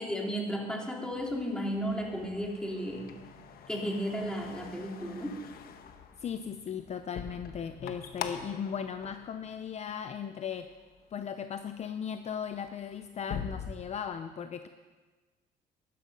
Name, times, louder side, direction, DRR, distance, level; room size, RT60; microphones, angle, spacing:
voice 1, 0.0-3.2 3.7-5.4, equal, 5° left, 0 dB, 2.5 m, -34 dB
sound 1, 1.1-10.1 10.5-11.0 11.5-11.7 12.0-13.7, left 7 dB, 65° left, 1.1 m, -44 dB
voice 2, 6.2-10.7 11.1-14.7, left 7 dB, 40° left, 9 dB, 0.6 m, -37 dB
12.5 x 12.0 x 5.3 m, 1.3 s
cardioid pair, 110°, 17 cm